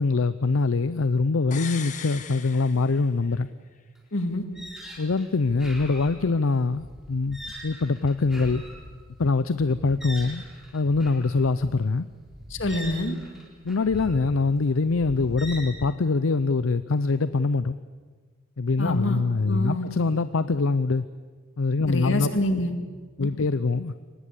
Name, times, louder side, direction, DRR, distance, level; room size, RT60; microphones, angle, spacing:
voice 1, 0.0-3.5 5.0-8.6 9.2-10.4 10.7-12.1 13.6-17.8 18.6-21.1 21.6-22.3 23.2-23.9, left 3 dB, 85° left, 14 dB, 0.6 m, -24 dB
sound 1, 1.5-3.4 3.7-3.8, left 8 dB, 35° left, 1.4 m, -39 dB
sound 2, 4.0-4.1 4.3-15.8, equal, ahead, 4.5 m, -42 dB
voice 2, 4.1-4.4 12.5-13.2 18.8-19.9 21.9-22.7 23.2-23.3, left 1 dB, 70° left, 7 dB, 2.2 m, -26 dB
24.0 x 20.0 x 8.3 m, 1.5 s
head